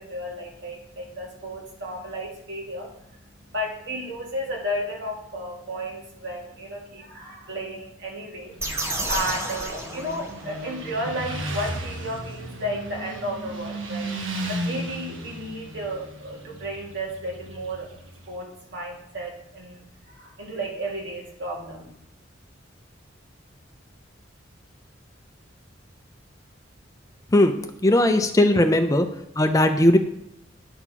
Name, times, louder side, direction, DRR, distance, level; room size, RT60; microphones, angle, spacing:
voice 1, 0.0-14.1 14.5-17.9 18.3-21.9, equal, 60° right, -1 dB, 2.3 m, -33 dB
Motorcycle, 8.5-18.3, right 1 dB, 80° right, 1.1 m, -35 dB
sound 1, 8.6-10.7, right 1 dB, 15° right, 1.0 m, -31 dB
voice 2, 27.8-29.1 29.4-30.0, left 1 dB, 15° left, 6 dB, 0.5 m, -18 dB
9.8 x 4.3 x 5.8 m, 0.78 s
head